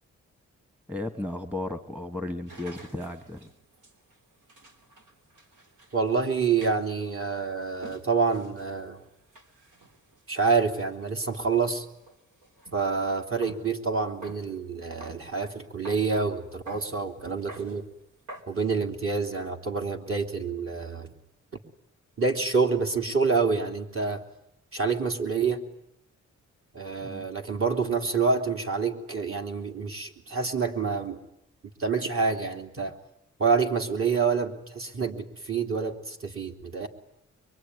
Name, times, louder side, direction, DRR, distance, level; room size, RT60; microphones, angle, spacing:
voice 1, 0.9-3.5 27.0-27.3, left 2 dB, 5° right, 9 dB, 1.3 m, -34 dB
sound 1, 2.5-12.9 13.2-13.8 14.1-15.3 15.8-16.1 16.7-16.9 17.2-17.8 18.3-18.4, right 2 dB, 85° right, 3.4 m, -49 dB
voice 2, 5.9-9.0 10.3-11.8 12.7-17.8 18.5-21.1 22.2-24.2 24.7-25.6 26.7-31.2 31.8-32.9 33.4-36.9, right 5 dB, 45° right, 4 dB, 3.3 m, -27 dB
24.0 x 23.5 x 9.8 m, 0.79 s
cardioid pair, 95°, 30 cm